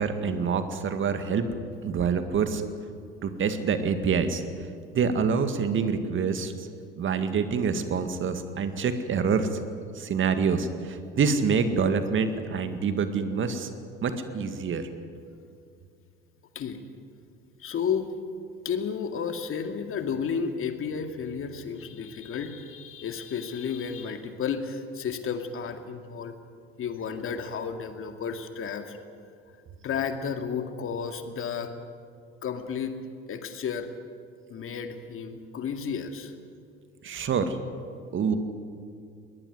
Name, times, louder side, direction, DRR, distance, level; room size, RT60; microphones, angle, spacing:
voice 1, 0.0-1.6 1.8-2.6 3.2-4.4 4.9-6.5 7.0-9.6 10.0-13.7 14.0-14.9 37.0-37.6 38.1-38.4, right 5 dB, 40° right, 9 dB, 2.0 m, -26 dB
voice 2, 17.6-18.1 18.6-26.4 26.8-29.0 29.8-31.7 32.4-33.0 33.3-33.9 34.5-36.3, left 6 dB, 45° left, 6 dB, 2.3 m, -32 dB
21.5 x 19.0 x 9.6 m, 2.3 s
hypercardioid pair, 65°, 30 cm